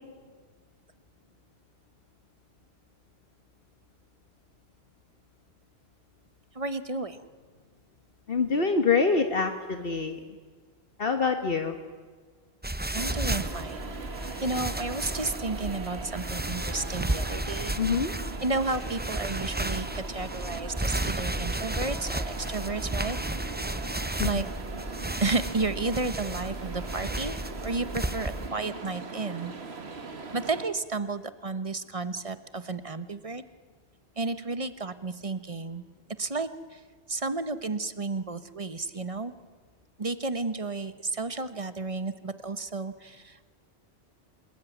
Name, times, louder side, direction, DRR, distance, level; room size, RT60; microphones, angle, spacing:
voice 1, 6.5-7.2 12.9-13.9 14.4-17.8 18.4-23.2 24.2-24.4 25.2-29.5 30.3-33.4 34.2-35.8 36.2-36.8 37.1-39.3 40.0-43.5, right 3 dB, 35° right, 12 dB, 1.2 m, -32 dB
voice 2, 8.3-10.3 11.0-11.8 17.8-18.1 24.2-24.4, left 4 dB, 65° left, 6 dB, 1.6 m, -25 dB
sound 1, 12.6-28.5, right 1 dB, 10° right, 0.7 m, -33 dB
sound 2, 13.0-30.7, right 4 dB, 85° right, 1.9 m, -40 dB
28.0 x 20.0 x 9.4 m, 1.5 s
omnidirectional pair, 1.0 m